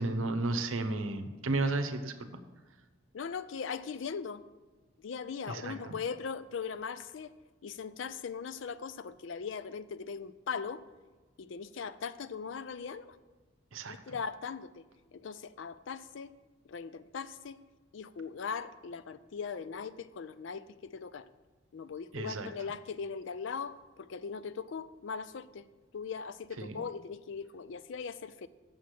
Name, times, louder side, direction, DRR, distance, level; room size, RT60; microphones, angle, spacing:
voice 1, 0.0-2.1 5.5-6.0 13.7-14.0 22.1-22.5 26.6-26.7, right 2 dB, 85° right, 8 dB, 0.8 m, -33 dB
voice 2, 3.1-4.4 5.0-7.3 7.6-10.8 11.4-13.2 13.9-14.8 15.1-16.3 16.7-17.6 17.9-21.3 21.7-25.7 25.9-28.5, left 6 dB, 65° left, 15 dB, 0.4 m, -39 dB
7.1 x 6.5 x 7.5 m, 1.3 s
head